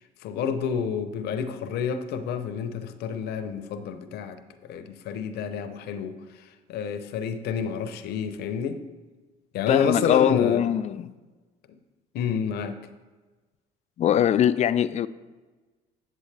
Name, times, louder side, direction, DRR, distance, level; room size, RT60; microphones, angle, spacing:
voice 1, 0.2-4.4 4.7-6.2 6.7-8.8 9.5-10.7 12.1-12.8, left 7 dB, 70° left, 10 dB, 0.7 m, -29 dB
voice 2, 9.7-11.1 14.0-15.1, left 10 dB, 40° left, 15 dB, 0.4 m, -22 dB
8.5 x 7.7 x 3.3 m, 1.3 s
supercardioid pair, 80°, 17 cm